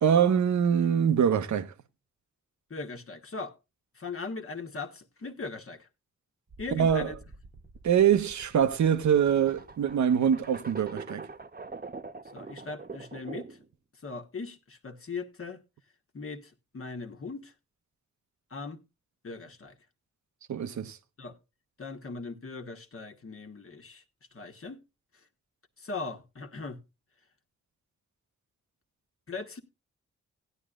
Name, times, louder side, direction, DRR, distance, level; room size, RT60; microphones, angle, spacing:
voice 1, 0.0-1.7 6.7-7.1 7.8-11.2 20.5-21.0, right 8 dB, 65° right, 0.8 m, -24 dB
voice 2, 2.7-3.6 3.9-5.9 6.6-7.1 12.3-13.6 14.0-15.6 16.1-17.5 18.5-18.8 19.2-19.8 21.2-21.4 21.8-24.0 24.3-24.8 25.8-26.8 29.3-29.6, left 4 dB, 45° left, 1.3 m, -39 dB
sound 1, 6.5-13.7, right 4 dB, 30° right, 1.0 m, -44 dB
16.0 x 9.9 x 2.4 m
supercardioid pair, 40°, 31 cm